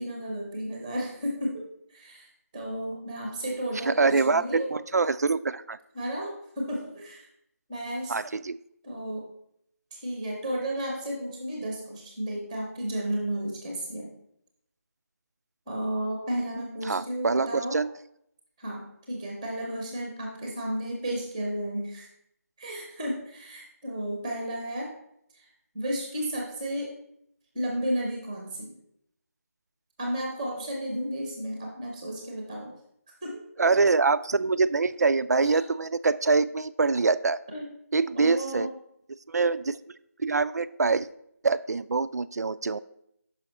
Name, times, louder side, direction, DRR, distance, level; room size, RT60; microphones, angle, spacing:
voice 1, 0.0-4.7 5.9-7.3 7.7-8.1 8.8-9.2 9.9-14.1 15.7-17.8 18.6-22.1 22.6-24.9 25.3-26.9 27.5-28.7 30.0-32.7 33.2-33.4 35.4-35.6 37.5-37.7 38.1-38.7, right 1 dB, 5° right, -1 dB, 0.6 m, -33 dB
voice 2, 3.8-5.8 8.1-8.6 16.8-17.9 33.6-37.4 37.9-38.7 39.3-39.8 40.2-41.1 41.4-42.8, right 4 dB, 85° right, 15 dB, 0.4 m, -24 dB
5.6 x 5.5 x 4.1 m, 0.73 s
figure-of-eight pair, 175°, 9 cm